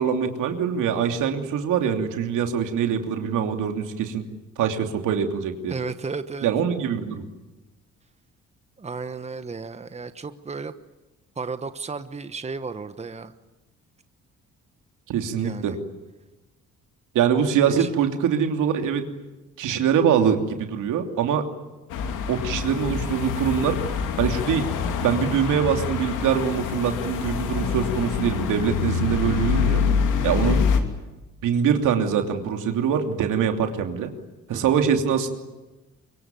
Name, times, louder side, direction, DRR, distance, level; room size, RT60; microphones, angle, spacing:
voice 1, 0.0-4.2 4.6-5.7 6.4-7.2 15.1-15.7 17.1-19.0 19.6-21.4 22.3-23.8 24.2-24.7 25.0-29.8 30.2-30.6 31.4-34.1 34.5-35.3, right 8 dB, 85° right, 5 dB, 2.9 m, -23 dB
voice 2, 5.7-6.5 8.8-10.7 11.4-13.3 15.3-15.8 17.6-17.9 30.3-30.6 34.5-34.6, right 4 dB, 20° right, 11 dB, 1.2 m, -34 dB
sound 1, 21.9-30.8, left 6 dB, 90° left, 2.9 m, -25 dB
24.5 x 23.0 x 9.3 m, 1.1 s
cardioid pair, 90°, 30 cm